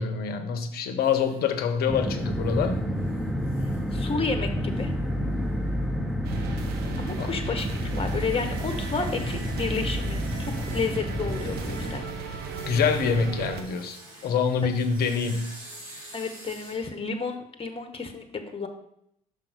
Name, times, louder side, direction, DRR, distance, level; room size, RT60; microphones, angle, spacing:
voice 1, 0.0-2.8 7.2-7.3 12.7-14.0 14.2-15.5, left 6 dB, 60° left, 8 dB, 0.9 m, -25 dB
sound 1, 1.0-16.9, right 1 dB, 80° right, 2.2 m, -50 dB
sound 2, 1.9-12.0, equal, ahead, 1.3 m, -30 dB
voice 2, 3.6-4.9 7.0-12.1 16.1-18.7, left 4 dB, 30° left, 6 dB, 1.2 m, -31 dB
sound 3, 6.2-13.6, right 5 dB, 65° right, 0.9 m, -36 dB
5.9 x 4.9 x 5.1 m, 0.74 s
hypercardioid pair, 55°, 18 cm